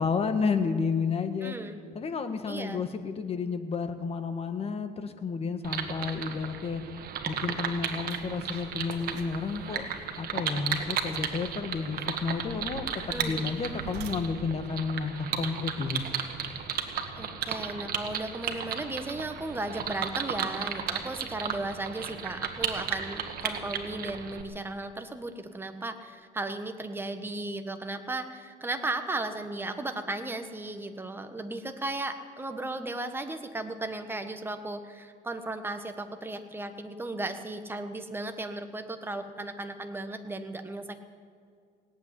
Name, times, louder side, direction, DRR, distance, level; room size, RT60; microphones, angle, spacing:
voice 1, 0.0-1.5 1.9-6.8 7.3-9.9 10.2-16.0, left 5 dB, 35° left, 8 dB, 1.4 m, -31 dB
voice 2, 1.4-1.8 2.5-2.8 13.1-13.5 17.2-41.0, right 2 dB, 15° right, 7 dB, 1.2 m, -35 dB
sound 1, 5.6-24.4, right 7 dB, 60° right, 1.6 m, -35 dB
sound 2, 7.4-7.5 7.9-16.2, right 5 dB, 80° right, 1.5 m, -48 dB
18.0 x 8.2 x 9.9 m, 2.2 s
cardioid pair, 110°, 17 cm